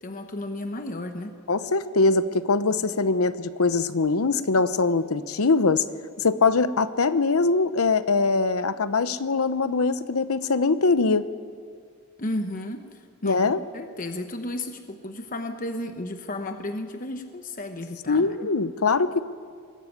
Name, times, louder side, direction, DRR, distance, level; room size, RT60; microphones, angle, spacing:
voice 1, 0.0-1.3 12.2-18.5, left 1 dB, 40° left, 6 dB, 1.0 m, -33 dB
voice 2, 1.5-5.8 6.2-11.2 13.2-13.6 18.1-19.2, left 3 dB, 80° left, 13 dB, 0.8 m, -22 dB
22.0 x 15.0 x 9.5 m, 2.1 s
head